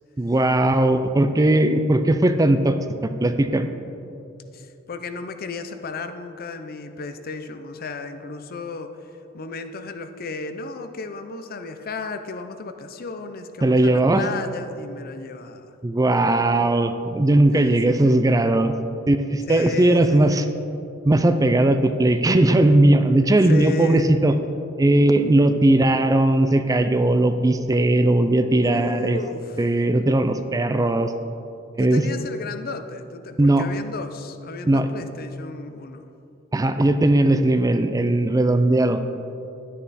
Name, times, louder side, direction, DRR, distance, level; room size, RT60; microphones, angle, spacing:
voice 1, 0.2-2.8 3.2-3.7 13.6-14.2 15.8-18.7 19.1-20.4 21.0-24.3 24.8-29.2 29.6-31.1 31.8-32.0 33.4-33.6 34.7-34.9 36.5-39.0, right 1 dB, 15° right, 9 dB, 0.4 m, -18 dB
voice 2, 4.5-15.8 17.5-18.2 19.5-20.5 23.5-24.1 28.6-29.6 31.8-36.1, left 3 dB, 50° left, 8 dB, 0.6 m, -34 dB
10.5 x 10.0 x 4.2 m, 2.7 s
head